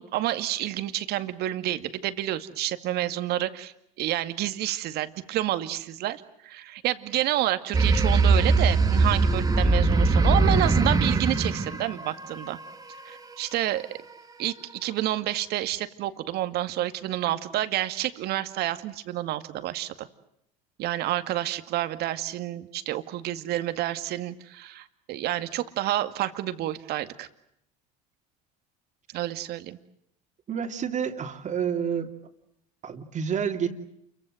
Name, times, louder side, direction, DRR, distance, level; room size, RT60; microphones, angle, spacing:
voice 1, 0.0-12.6 13.1-13.9 14.4-14.5 14.8-20.1 20.8-27.3 29.1-29.8, right 14 dB, 60° right, 11 dB, 2.1 m, -29 dB
sound 1, 7.7-12.7, right 3 dB, 20° right, 2.1 m, -21 dB
voice 2, 30.5-32.1 32.8-33.7, right 7 dB, 40° right, 4 dB, 3.0 m, -29 dB
28.5 x 23.5 x 7.9 m, 0.76 s
supercardioid pair, 90°, 19 cm